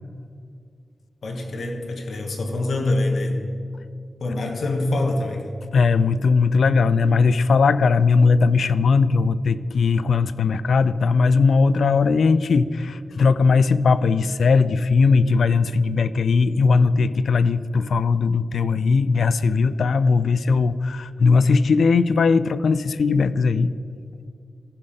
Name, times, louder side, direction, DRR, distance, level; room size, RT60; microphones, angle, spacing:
voice 1, 1.2-3.5 4.2-5.5, left 2 dB, 70° left, 2 dB, 1.3 m, -25 dB
voice 2, 5.7-23.7, left 4 dB, 85° left, 15 dB, 0.3 m, -19 dB
15.0 x 5.8 x 5.1 m, 2.3 s
wide cardioid pair, 160°, 0 cm